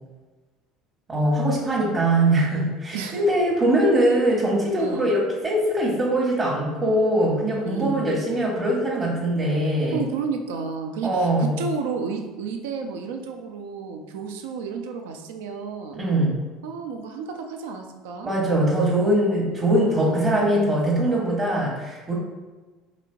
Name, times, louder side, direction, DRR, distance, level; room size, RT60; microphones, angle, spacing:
voice 1, 1.1-10.0 11.0-11.5 15.9-16.4 18.3-22.1, right 1 dB, 30° right, -4 dB, 0.9 m, -22 dB
voice 2, 7.7-8.0 9.9-16.0 16.6-18.4 19.8-20.4, right 5 dB, 70° right, 4 dB, 0.4 m, -32 dB
4.2 x 2.9 x 2.5 m, 1.3 s
hypercardioid pair, 65°, 0 cm